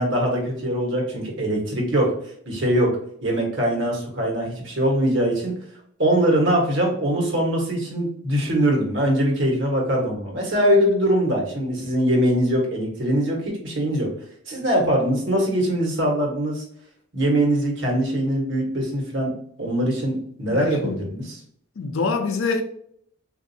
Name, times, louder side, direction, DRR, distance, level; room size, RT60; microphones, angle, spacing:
voice 1, 0.0-2.1 2.5-3.0 3.2-5.5 6.0-14.1 14.5-16.6 17.1-21.4, right 1 dB, 60° right, 1.2 m, -22 dB
voice 2, 20.5-21.1 21.8-22.6, left 4 dB, 80° left, 0.5 m, -25 dB
3.7 x 2.5 x 2.6 m
head